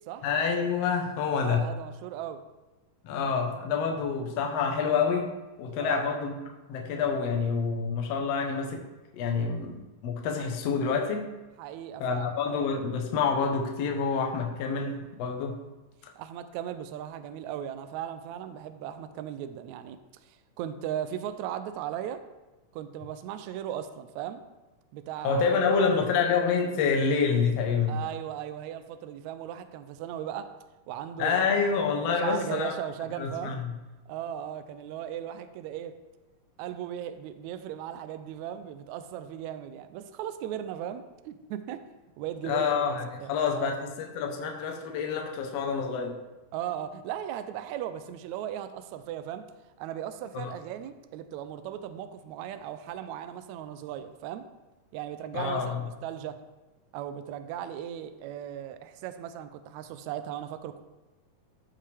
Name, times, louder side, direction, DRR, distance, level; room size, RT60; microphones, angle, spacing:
voice 1, 0.2-1.7 3.0-5.3 5.6-6.4 6.7-8.8 9.1-11.3 12.0-15.6 25.2-28.0 31.2-32.7 33.2-33.7 42.5-46.2 50.3-50.5 55.3-55.8, left 5 dB, 65° left, 3 dB, 1.7 m, -27 dB
voice 2, 1.4-2.4 5.8-6.1 11.6-12.3 16.2-20.0 20.2-22.2 22.7-24.4 24.9-26.2 27.9-30.5 30.9-31.7 32.1-33.6 34.1-36.0 36.6-41.8 42.2-42.8 43.2-43.7 46.5-49.5 49.8-54.5 54.9-56.4 56.9-60.8, right 10 dB, 80° right, 10 dB, 1.7 m, -37 dB
13.5 x 5.6 x 3.4 m, 1.1 s
omnidirectional pair, 3.7 m